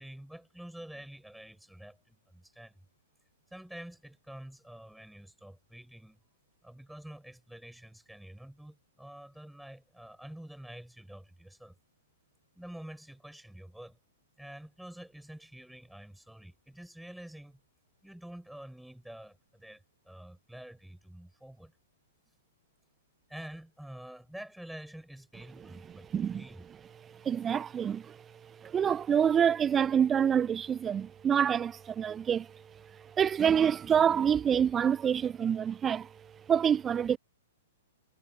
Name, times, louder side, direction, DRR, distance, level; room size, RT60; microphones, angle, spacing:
voice 1, 0.0-2.8 3.5-6.2 6.6-11.8 12.5-14.0 14.4-17.6 18.0-21.7 23.3-26.6, right 1 dB, ahead, 4.6 m, -48 dB
voice 2, 26.1-26.4 27.2-28.2 28.6-32.5 33.2-36.1 36.5-37.2, right 8 dB, 20° right, 0.4 m, -26 dB
figure-of-eight pair, 110°, 0 cm